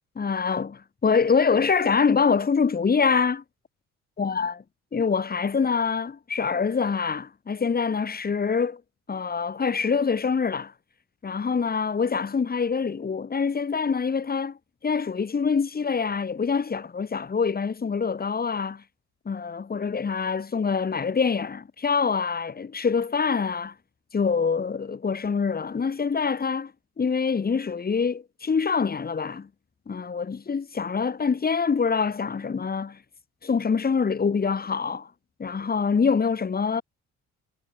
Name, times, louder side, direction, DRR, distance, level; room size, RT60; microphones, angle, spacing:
voice 1, 0.1-3.4 4.2-4.5 4.9-8.8 9.1-10.7 11.2-14.6 14.8-18.8 19.2-23.7 24.1-26.7 27.0-29.5 29.9-33.0 33.4-35.1 35.4-36.8, left 5 dB, 30° left, 1.6 m, -25 dB
cardioid pair, 90°, 30 cm